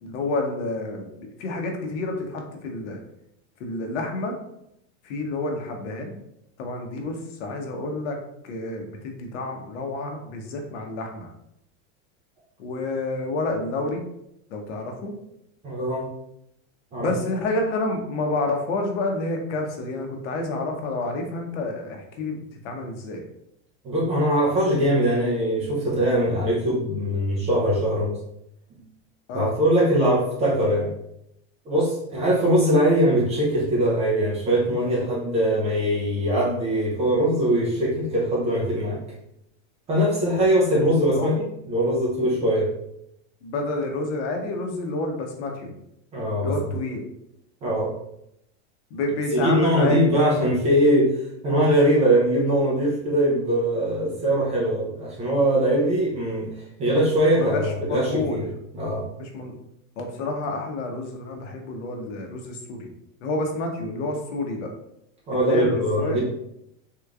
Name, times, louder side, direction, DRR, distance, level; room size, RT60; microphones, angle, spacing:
voice 1, 0.0-3.0 3.6-4.4 5.0-6.1 6.6-8.2 8.4-11.3 12.6-14.0 14.5-15.1 17.0-23.2 29.3-29.5 41.1-41.3 43.4-45.8 46.4-47.0 48.9-50.0 57.3-58.4 59.2-59.6 60.0-62.9 63.2-64.7 65.5-66.2, left 2 dB, 65° left, 3 dB, 0.9 m, -29 dB
voice 2, 15.6-16.1 16.9-17.1 23.8-28.2 29.3-30.9 31.7-39.0 39.9-41.4 41.7-42.7 46.1-46.5 47.6-47.9 49.3-51.1 51.4-56.5 56.8-58.4 58.7-59.0 65.3-66.2, equal, 15° right, -5 dB, 0.5 m, -21 dB
3.6 x 3.0 x 2.4 m, 0.79 s
supercardioid pair, 160°, 38 cm